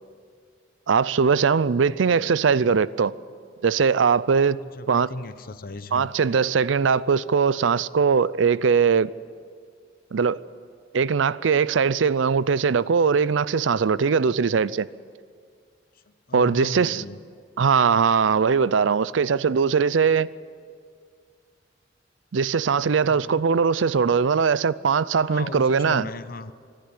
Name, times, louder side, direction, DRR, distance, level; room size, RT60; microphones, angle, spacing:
voice 1, 0.9-3.1 3.6-4.6 4.9-5.1 5.9-9.1 10.1-10.4 10.9-14.9 16.3-17.0 17.6-20.3 22.3-26.1, right 6 dB, 90° right, 0.5 m, -21 dB
voice 2, 4.6-6.1 16.3-17.2 23.1-23.5 25.2-26.5, left 3 dB, 50° left, 0.8 m, -37 dB
24.5 x 11.5 x 9.7 m
head